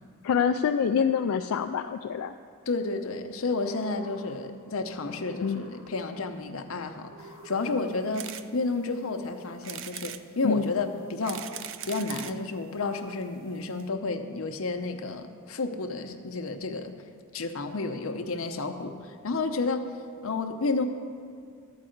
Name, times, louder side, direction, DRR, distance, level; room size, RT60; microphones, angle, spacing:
voice 1, 0.2-2.3 5.4-5.6 10.4-10.7, left 7 dB, 90° left, 5 dB, 0.3 m, -26 dB
voice 2, 2.7-11.4 11.8-16.9 17.3-19.9 20.2-20.8, left 3 dB, 70° left, 6 dB, 0.7 m, -31 dB
sound 1, 3.3-4.7 5.0-6.3 7.0-8.3, right 1 dB, 45° right, 2.4 m, -51 dB
sound 2, 8.1-8.5 8.9-9.0 9.6-10.2 11.0-12.4 13.2-13.3 13.5-13.6 13.8-13.9, right 10 dB, 60° right, 0.4 m, -39 dB
12.5 x 4.8 x 7.8 m, 2.2 s
head